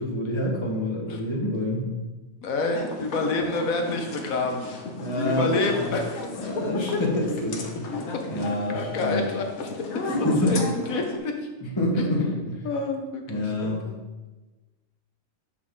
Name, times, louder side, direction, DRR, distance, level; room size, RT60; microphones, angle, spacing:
voice 1, 0.0-1.9 4.9-6.0 6.3-7.8 8.3-9.3 10.1-10.6 11.6-12.7 13.3-13.8, left 1 dB, 20° left, -2 dB, 1.4 m, -27 dB
voice 2, 2.4-4.7 5.1-6.0 8.7-9.7 9.9-11.5 12.0-12.1 12.6-14.0, left 3 dB, 85° left, 3 dB, 1.5 m, -28 dB
sound 1, 2.7-11.2, left 3 dB, 60° left, 1.2 m, -35 dB
8.0 x 6.0 x 3.9 m, 1.2 s
omnidirectional pair, 1.4 m